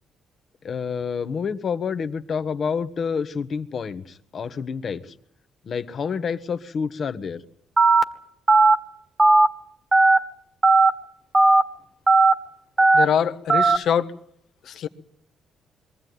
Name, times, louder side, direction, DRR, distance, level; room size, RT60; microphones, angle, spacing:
voice 1, 0.6-5.0 5.7-7.4, left 6 dB, 50° left, 11 dB, 1.4 m, -28 dB
Telephone, 7.8-8.0 8.5-8.7 9.2-9.5 9.9-10.2 10.6-10.9 11.3-11.6 12.1-12.3 12.8-13.1 13.5-13.8, right 3 dB, 20° right, 1.7 m, -15 dB
voice 2, 12.9-14.1 14.6-14.9, left 8 dB, 70° left, 9 dB, 1.5 m, -24 dB
23.5 x 15.0 x 9.5 m, 0.68 s
cardioid pair, 90°, 0 cm